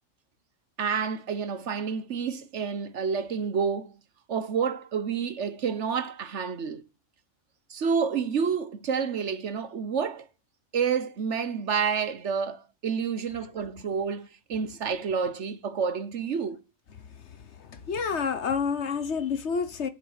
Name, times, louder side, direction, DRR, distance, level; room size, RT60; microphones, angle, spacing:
voice 1, 0.8-3.9 4.3-6.8 7.7-10.3 10.7-16.6, right 6 dB, 60° right, 1.2 m, -29 dB
voice 2, 17.6-19.9, left 6 dB, 55° left, 1.3 m, -29 dB
10.0 x 7.7 x 6.5 m
omnidirectional pair, 1.4 m